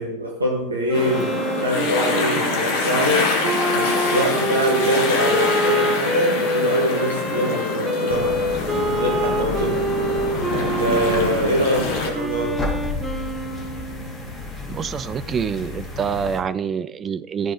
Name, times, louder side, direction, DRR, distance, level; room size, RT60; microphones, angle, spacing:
voice 1, 0.0-3.3 3.7-9.9 10.5-12.6, equal, 75° right, -1 dB, 1.3 m, -24 dB
sound 1, 0.9-12.1, left 3 dB, 50° left, 1.6 m, -25 dB
Wind instrument woodwind instrument, 0.9-14.3, right 1 dB, 5° right, 1.1 m, -26 dB
sound 2, 8.1-16.4, left 3 dB, 20° left, 2.2 m, -32 dB
voice 2, 14.7-17.5, right 7 dB, 20° right, 14 dB, 0.4 m, -26 dB
14.0 x 4.9 x 3.8 m, 0.92 s
figure-of-eight pair, 90°, 0 cm